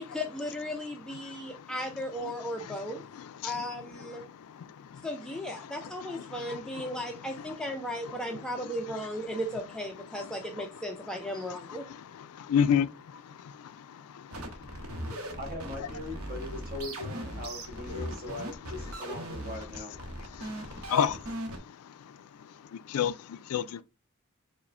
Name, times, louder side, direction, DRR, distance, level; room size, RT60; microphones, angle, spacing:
voice 1, 0.0-3.0 3.4-4.2 5.0-11.8, equal, 5° left, 0.4 m, -36 dB
voice 2, 1.2-1.7 2.2-2.3 2.6-3.6 4.0-5.1 5.5-6.9 7.4-7.5 8.1-8.4 9.3-9.4 10.2-10.7 11.5-15.2 17.9-18.0 20.2-21.3 21.7-22.2 22.7-23.8, left 8 dB, 75° left, 0.3 m, -34 dB
sound 1, 14.3-21.6, right 1 dB, 70° right, 0.8 m, -39 dB
voice 3, 15.4-20.0, left 2 dB, 40° right, 1.3 m, -40 dB
4.7 x 2.1 x 3.2 m
head